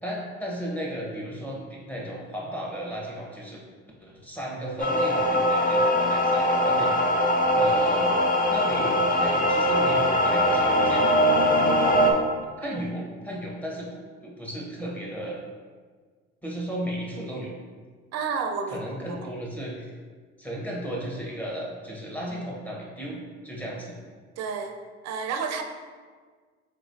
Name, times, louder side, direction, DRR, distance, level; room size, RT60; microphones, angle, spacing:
voice 1, 0.0-3.6 4.0-6.9 7.5-8.2 8.5-11.1 12.6-15.4 16.4-17.5 18.7-19.9 20.4-23.2 23.4-23.9, equal, 5° left, -4 dB, 1.2 m, -34 dB
sound 1, 4.8-12.1, equal, 30° left, 0.6 m, -21 dB
voice 2, 18.1-19.2 24.4-24.8 25.0-25.6, right 5 dB, 55° right, 5 dB, 0.6 m, -31 dB
4.3 x 3.0 x 2.7 m, 1.5 s
hypercardioid pair, 70°, 30 cm